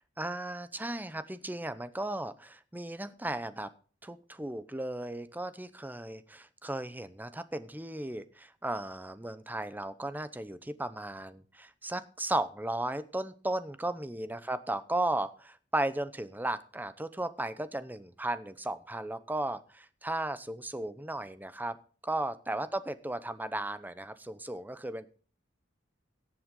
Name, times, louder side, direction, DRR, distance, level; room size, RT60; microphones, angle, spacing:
voice 1, 0.2-3.7 4.0-21.8 22.0-25.1, right 1 dB, 10° right, 13 dB, 0.8 m, -35 dB
17.5 x 7.6 x 3.8 m, 0.39 s
head